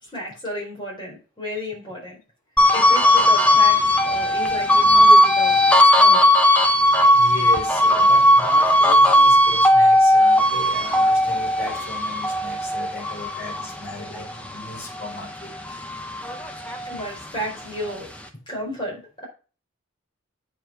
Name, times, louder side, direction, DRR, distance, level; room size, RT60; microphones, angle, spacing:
voice 1, 0.0-2.2 2.7-5.6 5.9-6.3 16.8-18.1 18.5-19.3, equal, 20° left, 4.6 m, -32 dB
sound 1, 2.6-15.2 15.6-17.3, left 1 dB, 5° left, 0.9 m, -17 dB
voice 2, 7.1-15.8 16.7-16.8, left 1 dB, 45° left, 3.4 m, -36 dB
8.7 x 4.9 x 4.7 m
head